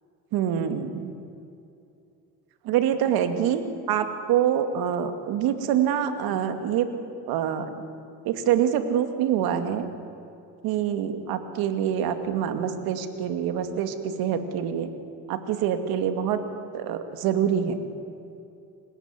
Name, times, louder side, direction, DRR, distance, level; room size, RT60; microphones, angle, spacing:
voice 1, 0.3-1.1 2.6-6.9 7.3-7.7 8.2-9.9 10.6-14.9 15.3-16.4 16.7-17.8, right 9 dB, 80° right, 8 dB, 2.4 m, -25 dB
28.0 x 16.5 x 9.8 m, 2.6 s
supercardioid pair, 70°, 37 cm